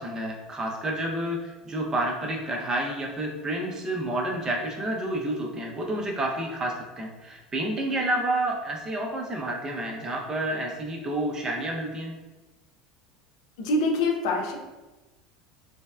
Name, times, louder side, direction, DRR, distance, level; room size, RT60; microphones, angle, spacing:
voice 1, 0.0-12.1, right 1 dB, 25° right, 0 dB, 0.6 m, -29 dB
voice 2, 13.6-14.6, left 2 dB, 65° left, 2 dB, 0.4 m, -25 dB
3.3 x 2.1 x 2.2 m, 1.1 s
figure-of-eight pair, 75°, 3 cm